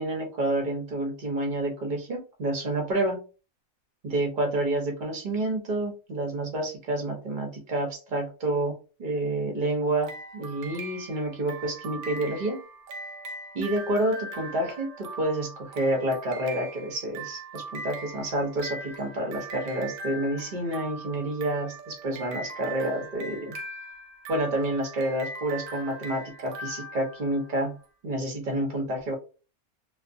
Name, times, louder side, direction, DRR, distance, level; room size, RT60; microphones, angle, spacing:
voice 1, 0.0-3.3 4.0-12.6 13.5-23.5 24.3-27.8 28.0-29.1, right 1 dB, 45° right, 2 dB, 0.7 m, -29 dB
sound 1, 10.0-27.7, right 2 dB, 85° right, 1.1 m, -40 dB
2.4 x 2.3 x 2.6 m, 0.34 s
omnidirectional pair, 1.5 m